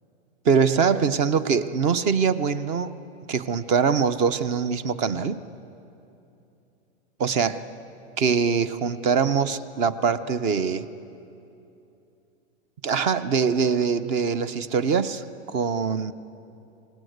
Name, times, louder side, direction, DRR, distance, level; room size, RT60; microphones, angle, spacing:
voice 1, 0.4-2.9 3.3-5.4 7.2-7.6 8.2-10.9 12.8-16.1, right 6 dB, 20° right, 15 dB, 0.5 m, -23 dB
26.5 x 18.0 x 8.0 m, 2.8 s
supercardioid pair, 155°, 34 cm